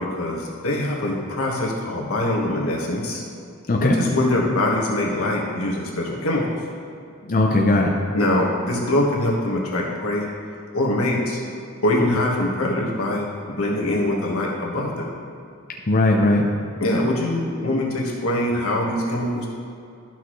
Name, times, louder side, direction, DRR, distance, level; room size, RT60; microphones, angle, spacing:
voice 1, 0.0-3.2 3.8-6.5 8.1-10.3 10.7-11.4 11.8-15.1 16.8-19.5, left 1 dB, 85° left, -2 dB, 1.5 m, -23 dB
voice 2, 7.3-8.1 12.0-12.2 15.9-16.6, left 2 dB, 40° left, -1 dB, 0.6 m, -19 dB
12.0 x 5.9 x 3.2 m, 2.5 s
head